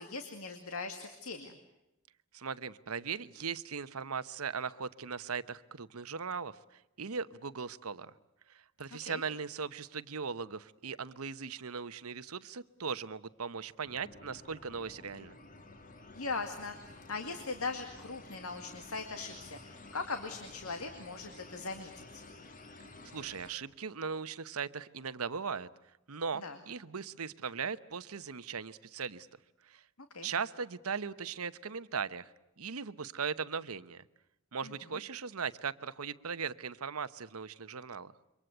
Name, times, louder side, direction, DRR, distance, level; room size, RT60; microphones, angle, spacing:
voice 1, 0.0-1.5 9.0-9.2 16.1-22.2 26.4-26.6 30.1-30.3 34.6-34.7, left 4 dB, 85° left, 7 dB, 2.3 m, -40 dB
voice 2, 2.3-8.1 8.5-15.4 23.1-25.7 26.1-29.3 29.6-29.8 30.2-34.0 34.5-38.1, right 6 dB, 90° right, 14 dB, 1.0 m, -39 dB
sound 1, 13.8-23.5, left 2 dB, 40° left, 2.2 m, -52 dB
27.5 x 24.0 x 8.0 m, 0.90 s
head